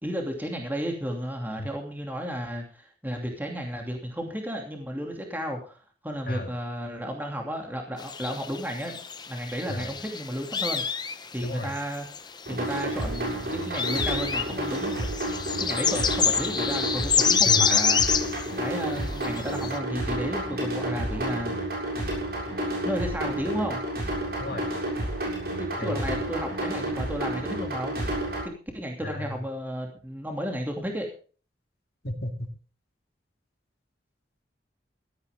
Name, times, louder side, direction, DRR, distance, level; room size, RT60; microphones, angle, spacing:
voice 1, 0.0-9.0 9.3-11.0 11.3-12.1 12.5-15.1 15.6-21.5 22.8-23.8 25.6-28.0 28.4-31.1, equal, 10° right, 2 dB, 2.8 m, -33 dB
sound 1, 8.0-12.4 12.8-18.4 19.0-19.7, left 6 dB, 25° left, 0.8 m, -26 dB
voice 2, 11.4-11.7 17.4-17.7 24.4-24.7 25.8-26.2 29.0-29.4 32.0-32.5, left 1 dB, 55° left, 5 dB, 2.4 m, -33 dB
sound 2, 12.5-28.5, right 1 dB, 55° right, 6.9 m, -30 dB
17.0 x 13.0 x 3.7 m, 0.39 s
head